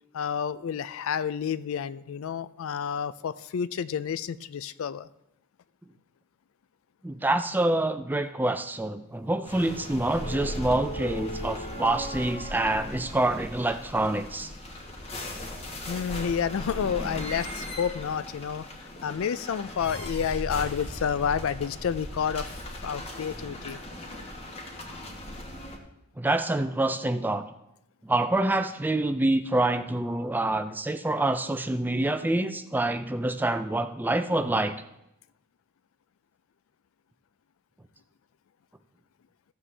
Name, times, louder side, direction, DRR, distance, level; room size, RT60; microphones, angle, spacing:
voice 1, 0.1-5.1 15.9-22.5 22.8-23.8, left 7 dB, 65° left, 16 dB, 0.3 m, -30 dB
voice 2, 7.0-14.5 26.2-27.5 28.0-34.8, right 2 dB, 10° right, 10 dB, 0.4 m, -26 dB
sound 1, 9.4-25.8, equal, 25° left, 1.3 m, -38 dB
14.5 x 7.3 x 3.3 m, 0.85 s
head